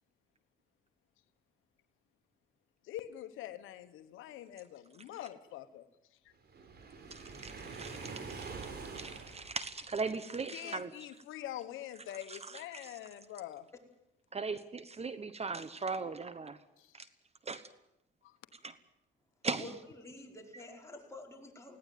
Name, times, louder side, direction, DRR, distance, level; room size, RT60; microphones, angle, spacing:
voice 1, 2.8-5.9 10.5-13.7 16.8-16.9 18.2-18.3, left 12 dB, 90° left, 1.1 m, -45 dB
Waves surf, 6.5-10.0, right 4 dB, 55° right, 5.0 m, -45 dB
voice 2, 7.1-8.1 8.9-10.9 12.3-12.9 14.3-16.6 16.9-17.1 17.5-17.7 18.5-18.7 19.4-19.7, right 4 dB, 30° right, 1.1 m, -39 dB
voice 3, 19.6-21.8, left 2 dB, 15° left, 5.1 m, -49 dB
20.0 x 17.5 x 9.3 m
cardioid pair, 90°, 20 cm